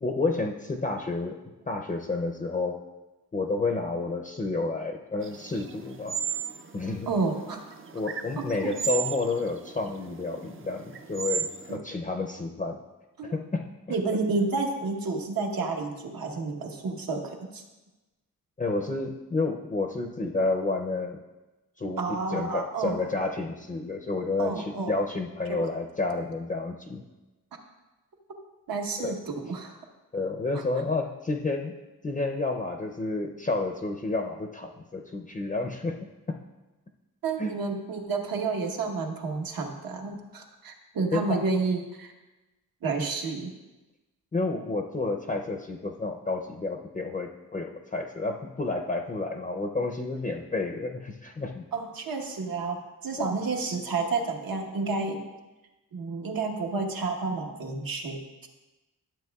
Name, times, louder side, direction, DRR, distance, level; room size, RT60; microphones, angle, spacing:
voice 1, 0.0-1.4 1.7-2.8 3.3-6.2 6.7-7.1 7.9-12.8 13.2-14.0 18.6-21.2 21.8-22.0 22.3-27.0 29.0-29.2 30.1-31.7 32.0-36.4 37.4-37.5 41.1-41.4 44.3-51.7 53.2-53.3, left 3 dB, 20° left, 1 dB, 0.5 m, -30 dB
sound 1, 5.2-11.7, right 7 dB, 35° right, 0.4 m, -35 dB
voice 2, 7.1-7.6 8.4-8.7 11.7-11.8 13.2-13.3 13.9-17.6 22.0-23.1 24.4-24.9 25.5-25.6 28.7-29.8 30.5-30.6 37.2-42.1 42.8-43.5 51.7-55.2 55.9-58.5, right 4 dB, 75° right, 2 dB, 1.1 m, -30 dB
12.0 x 7.6 x 2.3 m, 1.1 s
wide cardioid pair, 140°, 35 cm